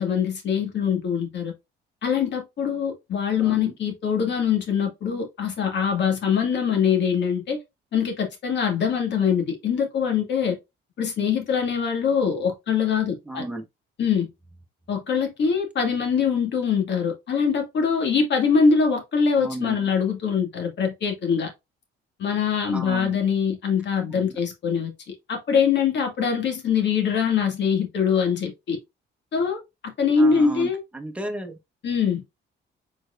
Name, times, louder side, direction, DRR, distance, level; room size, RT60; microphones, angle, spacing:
voice 1, 0.0-1.5 2.0-7.6 7.9-10.6 11.0-13.4 14.0-14.3 14.9-21.5 22.2-28.8 29.3-30.8 31.8-32.2, left 6 dB, 60° left, 1.9 m, -23 dB
voice 2, 3.4-3.7 13.3-13.6 19.4-19.9 22.7-23.2 24.1-24.3 30.2-30.7 30.9-31.6, right 1 dB, 5° right, 1.2 m, -33 dB
4.6 x 4.4 x 2.4 m
cardioid pair, 90°, 20 cm